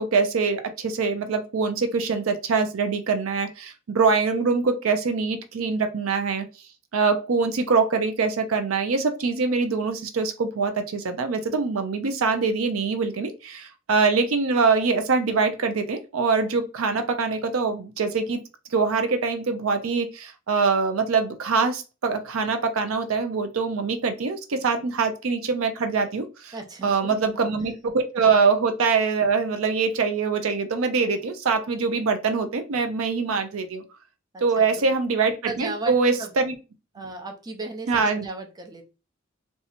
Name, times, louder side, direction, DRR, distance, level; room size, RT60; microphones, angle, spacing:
voice 1, 0.0-6.4 6.9-18.4 18.7-26.5 26.8-33.8 34.4-36.5 37.9-38.2, right 4 dB, 90° right, 8 dB, 0.5 m, -24 dB
voice 2, 26.5-27.3 34.3-34.9 35.4-36.3 36.9-38.8, right 3 dB, 20° right, 3 dB, 0.6 m, -36 dB
2.8 x 2.3 x 4.0 m, 0.31 s
head